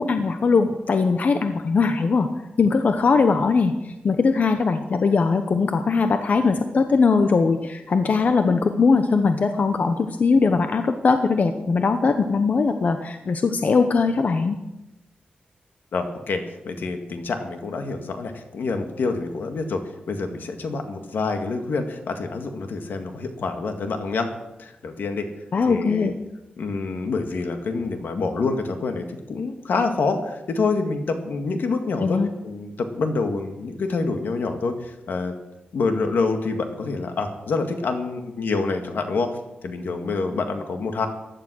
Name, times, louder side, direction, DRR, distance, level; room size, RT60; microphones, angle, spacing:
voice 1, 0.0-2.3 2.6-14.6 25.5-26.2 32.0-32.3, left 4 dB, 55° left, 7 dB, 0.9 m, -20 dB
voice 2, 15.9-19.8 20.1-24.3 24.6-25.3 25.6-26.1 26.6-35.3 35.7-39.3 39.6-41.1, left 4 dB, 80° left, 6 dB, 2.0 m, -27 dB
15.5 x 11.0 x 6.4 m, 0.96 s
wide cardioid pair, 110°, 3 cm